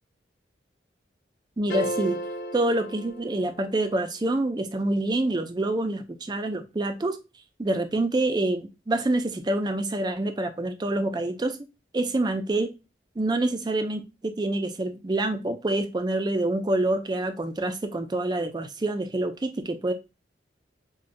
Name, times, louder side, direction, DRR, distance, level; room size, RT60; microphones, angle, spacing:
voice 1, 1.6-2.2 2.5-7.2 7.6-11.6 11.9-12.7 13.2-19.9, right 2 dB, 25° right, 0.4 m, -26 dB
sound 1, 1.7-4.0, equal, 65° left, 0.5 m, -33 dB
5.0 x 2.2 x 2.6 m
head